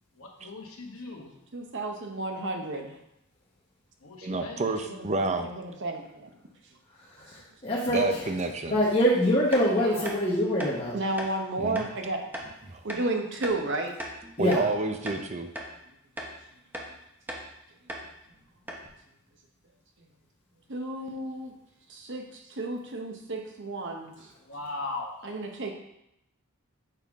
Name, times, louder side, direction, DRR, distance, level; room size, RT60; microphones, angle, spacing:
voice 1, 0.2-1.3 4.0-4.6 14.8-15.0 24.4-25.4, left 3 dB, 75° left, 1 dB, 1.2 m, -38 dB
voice 2, 1.5-3.0 4.8-6.3 9.8-10.1 10.9-12.3 12.8-13.9 20.7-21.5 21.9-24.1 25.2-25.7, right 2 dB, 55° right, 3 dB, 0.9 m, -33 dB
voice 3, 4.2-5.5 7.9-8.8 11.6-11.8 12.7-12.8 14.4-15.5, right 2 dB, 30° right, 7 dB, 0.5 m, -29 dB
voice 4, 7.3-8.2 8.7-11.0 14.4-14.7, equal, 25° left, -6 dB, 1.1 m, -24 dB
sound 1, 9.5-9.7 10.0-10.2 10.6-10.7 11.2-11.3 11.7-11.9 12.3-12.5 12.9-13.0 13.4-13.6 14.0-14.7 15.0-15.2 15.5-15.7 16.2-16.3 16.7-16.9 17.3-17.5 17.9-18.1 18.3-18.4 18.7-18.9, right 1 dB, 10° right, 0.8 m, -37 dB
6.8 x 5.6 x 3.6 m, 0.82 s
head